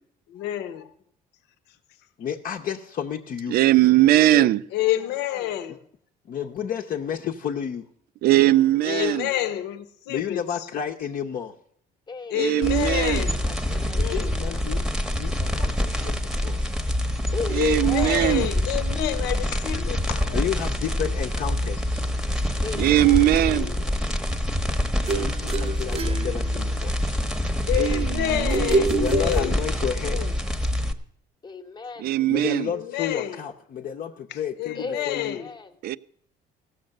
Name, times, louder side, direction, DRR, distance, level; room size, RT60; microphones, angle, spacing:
voice 1, 0.3-0.9 4.7-5.8 8.8-10.4 12.3-13.4 14.0-14.3 17.5-20.4 23.4-23.7 27.7-29.6 29.8-30.3 32.7-33.4 34.3-35.5, left 13 dB, 85° left, 0.9 m, -28 dB
voice 2, 2.2-3.6 6.3-7.9 10.1-11.5 13.9-14.8 15.2-16.7 20.3-22.0 25.2-27.0 29.0-30.2 32.3-35.4, left 8 dB, 55° left, 0.8 m, -31 dB
voice 3, 3.5-4.6 8.2-9.3 12.3-13.2 17.5-18.5 22.8-23.7 27.8-28.8 32.0-32.7 35.8-36.0, right 15 dB, 65° right, 0.4 m, -20 dB
voice 4, 8.4-9.2 12.1-13.1 13.4-14.6 17.3-18.2 22.6-23.3 27.8-28.6 31.4-32.1 34.7-35.7, left 4 dB, 25° left, 1.0 m, -37 dB
sound 1, 12.6-30.9, left 1 dB, 5° right, 0.9 m, -26 dB
sound 2, 25.1-27.0 28.5-30.0, right 3 dB, 35° right, 0.8 m, -27 dB
16.0 x 6.6 x 6.5 m
cardioid pair, 110°, 17 cm